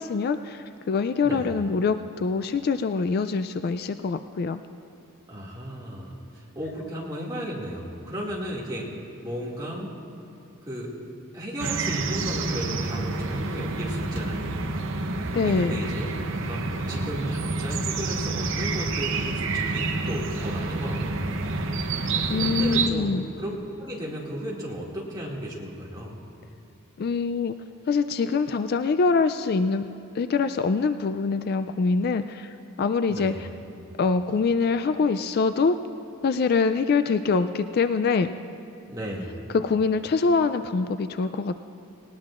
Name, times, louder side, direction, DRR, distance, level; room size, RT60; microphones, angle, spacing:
voice 1, 0.0-4.6 15.3-15.8 22.3-23.3 27.0-27.6 27.9-29.9 30.1-33.5 34.0-35.8 36.2-38.3 39.5-41.6, left 4 dB, 45° left, 10 dB, 0.3 m, -24 dB
voice 2, 1.2-1.6 5.3-8.9 9.2-10.0 10.7-10.9 11.3-14.8 15.3-21.4 22.1-26.1 33.1-33.5 38.9-39.4, equal, 20° right, -5 dB, 2.2 m, -34 dB
sound 1, 11.6-22.9, right 3 dB, 60° right, 0.7 m, -28 dB
19.5 x 19.0 x 2.5 m, 2.7 s
head